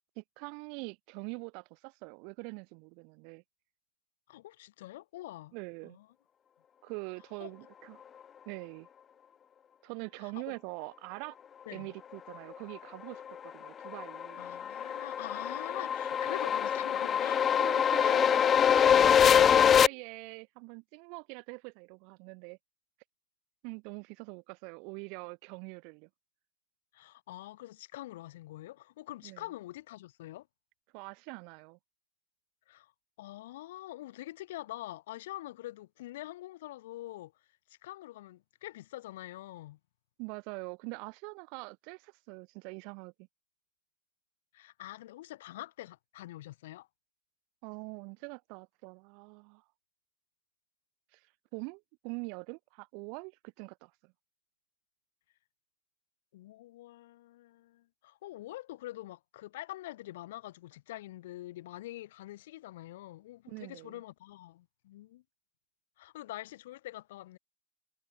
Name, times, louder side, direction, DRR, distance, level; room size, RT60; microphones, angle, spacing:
voice 1, 0.1-3.4 5.5-6.0 6.8-8.0 8.4-8.9 9.8-11.4 11.7-14.4 16.1-16.2 17.5-22.6 23.6-26.1 29.2-29.4 30.9-31.8 40.2-43.1 47.6-49.6 51.1-51.2 51.5-54.1 63.5-64.0, right 36 dB, 45° right, 6.8 m, -44 dB
voice 2, 4.3-5.5 5.8-6.1 7.4-7.5 10.2-10.5 11.7-11.9 14.4-17.7 18.0-18.2 26.9-30.5 32.7-32.9 33.2-37.3 37.7-39.8 44.5-46.9 56.3-65.2 66.0-67.4, left 15 dB, 55° left, 4.0 m, -45 dB
sound 1, 13.3-19.9, left 8 dB, 25° left, 2.0 m, -24 dB
figure-of-eight pair, 90°, 0 cm